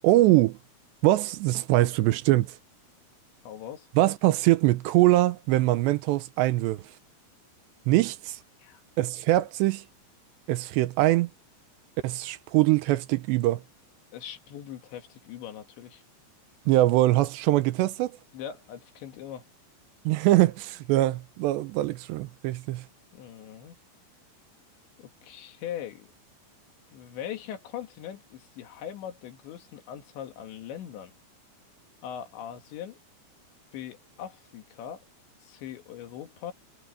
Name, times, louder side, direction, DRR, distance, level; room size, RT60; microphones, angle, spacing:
voice 1, 0.0-0.6 1.0-2.5 4.0-6.8 7.9-8.4 9.0-9.8 10.5-11.3 12.0-13.6 16.7-18.1 20.1-22.8, right 17 dB, 80° right, 2.8 m, -23 dB
voice 2, 3.4-3.9 8.6-8.8 14.1-16.0 18.3-19.4 23.1-23.8 25.0-26.1 26.9-31.1 32.0-33.0 33.7-35.0 35.4-36.5, left 10 dB, 80° left, 4.2 m, -40 dB
omnidirectional pair, 5.2 m